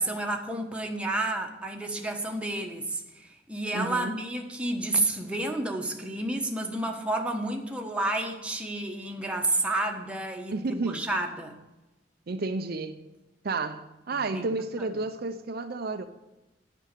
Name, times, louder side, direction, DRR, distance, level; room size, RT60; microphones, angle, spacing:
voice 1, 0.0-11.5 14.3-14.5 14.8-14.9, right 2 dB, 5° right, 1.2 m, -30 dB
voice 2, 3.7-4.2 10.5-11.1 12.3-13.1 13.4-16.0, right 3 dB, 55° right, 0.6 m, -31 dB
9.1 x 6.2 x 8.3 m
head